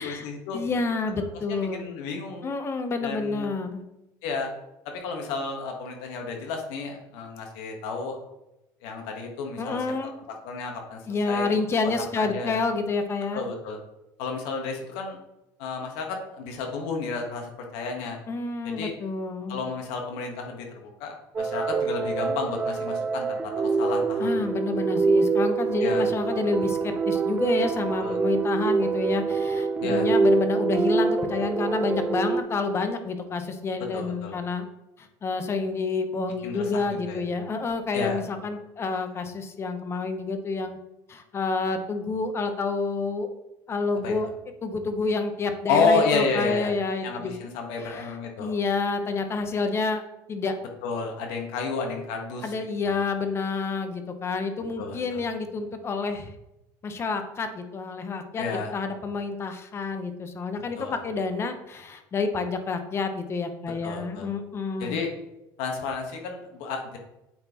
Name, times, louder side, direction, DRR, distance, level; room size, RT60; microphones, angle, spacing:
voice 1, 0.0-0.6 1.5-2.5 3.0-3.5 4.2-4.5 4.8-8.2 8.8-9.8 10.4-11.0 11.3-11.5 11.8-12.6 13.3-13.8 14.2-15.2 15.6-18.2 18.6-18.9 19.5-24.4 25.8-26.1 28.0-28.2 29.8-30.1 33.9-34.3 36.4-37.2 37.9-38.2 44.0-44.1 45.7-46.7 47.0-48.5 50.8-52.5 52.8-52.9 54.6-55.2 58.4-58.7 60.8-61.0 63.8-64.3 64.8-65.1 65.6-67.0, left 4 dB, 75° left, 2 dB, 1.3 m, -31 dB
voice 2, 0.5-1.9 2.4-3.8 9.6-10.1 11.1-13.5 18.3-19.7 24.2-34.7 35.0-40.8 41.1-43.3 43.7-44.3 44.6-47.3 47.8-50.0 50.3-50.5 52.4-56.3 56.8-58.4 58.7-65.0, left 4 dB, 30° left, 7 dB, 0.8 m, -29 dB
sound 1, 21.4-32.4, right 4 dB, 15° right, 0.4 m, -25 dB
8.6 x 4.1 x 2.9 m, 0.91 s
supercardioid pair, 115°, 9 cm